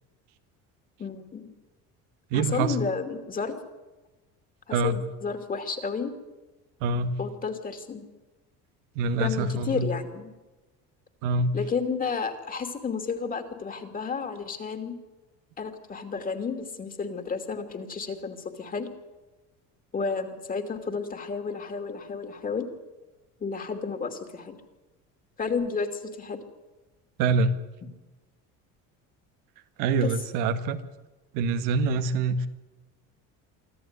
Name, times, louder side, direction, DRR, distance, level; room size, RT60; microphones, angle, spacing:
voice 1, 1.0-1.5 2.3-3.5 4.7-6.1 7.2-8.0 9.2-10.3 11.5-15.0 15.6-18.9 19.9-22.7 23.4-24.6 25.4-26.4 30.0-30.1, left 5 dB, 25° left, 7 dB, 2.7 m, -31 dB
voice 2, 2.3-2.8 4.7-5.0 6.8-7.2 9.0-9.9 11.2-11.6 27.2-27.6 29.8-30.8 31.3-32.5, right 3 dB, 90° right, 8 dB, 1.8 m, -25 dB
25.0 x 14.5 x 9.8 m, 1.1 s
cardioid pair, 145°, 32 cm